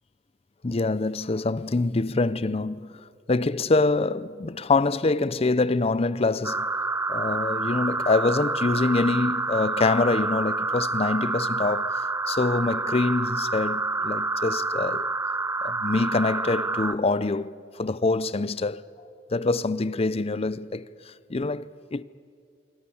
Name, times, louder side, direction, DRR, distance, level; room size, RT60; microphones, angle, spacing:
voice 1, 0.6-6.7 7.1-15.1 15.6-18.8 19.3-22.0, left 3 dB, 35° left, 0.6 m, -25 dB
sound 1, 6.4-17.0, right 3 dB, 15° right, 0.6 m, -28 dB
27.0 x 23.5 x 7.1 m
head